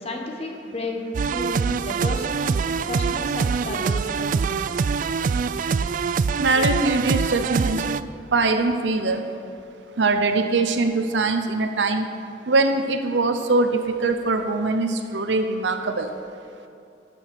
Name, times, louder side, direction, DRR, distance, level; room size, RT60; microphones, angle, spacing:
voice 1, 0.0-2.6 2.9-4.7, left 1 dB, 35° left, 2 dB, 1.3 m, -32 dB
sound 1, 1.1-8.0, right 5 dB, 50° right, 0.3 m, -24 dB
voice 2, 6.4-7.8 8.3-9.2 10.0-12.1 12.5-16.1, right 3 dB, 85° right, 7 dB, 0.7 m, -22 dB
13.0 x 6.2 x 6.7 m, 2.5 s
head